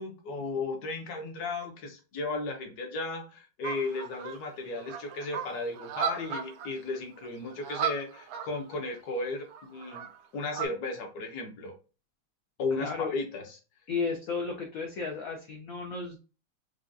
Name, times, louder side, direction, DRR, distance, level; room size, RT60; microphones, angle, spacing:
voice 1, 0.0-10.1 10.3-11.7 12.6-13.6, left 3 dB, 60° left, 3 dB, 1.1 m, -35 dB
sound 1, 3.6-4.4 4.8-6.7 7.0-7.1 7.2-7.3 7.5-8.7 9.5-10.7, right 8 dB, 80° right, 1.4 m, -35 dB
voice 2, 12.8-13.1 13.9-16.2, left 4 dB, 85° left, 2 dB, 0.7 m, -33 dB
4.8 x 2.3 x 2.6 m, 0.32 s
omnidirectional pair, 2.3 m